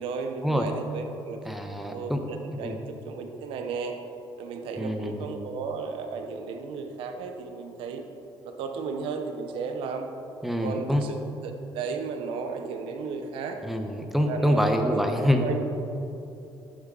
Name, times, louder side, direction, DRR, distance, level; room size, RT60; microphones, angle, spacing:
voice 1, 0.0-1.4 1.9-4.0 4.4-8.0 8.4-10.1 10.6-13.6 14.3-15.1 15.4-15.7, right 5 dB, 80° right, 6 dB, 1.0 m, -34 dB
voice 2, 1.4-2.8 4.8-5.3 10.4-11.0 13.6-15.5, equal, ahead, 4 dB, 1.2 m, -26 dB
11.5 x 8.8 x 4.1 m, 2.9 s
cardioid pair, 90°, 9 cm